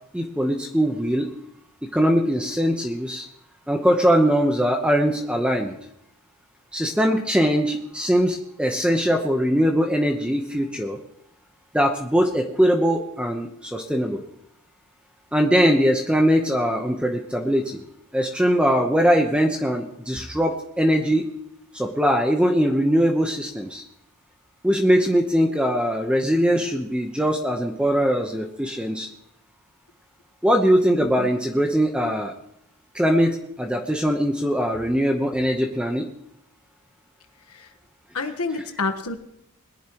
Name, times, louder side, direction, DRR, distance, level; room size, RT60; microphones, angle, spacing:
voice 1, 0.1-1.3 1.9-3.3 3.7-5.7 6.7-11.0 11.7-14.2 15.3-17.8 18.1-21.2 21.7-23.8 24.6-29.1 30.4-32.3 32.9-36.1, equal, 5° right, 2 dB, 1.0 m, -21 dB
voice 2, 31.0-31.3 37.5-37.7 38.1-39.2, left 3 dB, 85° left, 6 dB, 1.4 m, -29 dB
21.5 x 11.0 x 3.1 m, 0.76 s
head